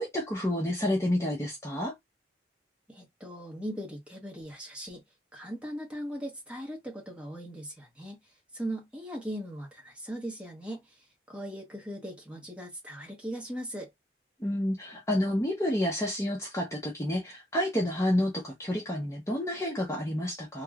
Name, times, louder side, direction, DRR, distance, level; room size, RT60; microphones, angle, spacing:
voice 1, 0.0-1.9 14.4-20.6, left 1 dB, 15° left, 0.7 m, -29 dB
voice 2, 2.9-5.0 5.3-13.9, equal, 5° right, 1.0 m, -39 dB
3.0 x 2.8 x 2.4 m
head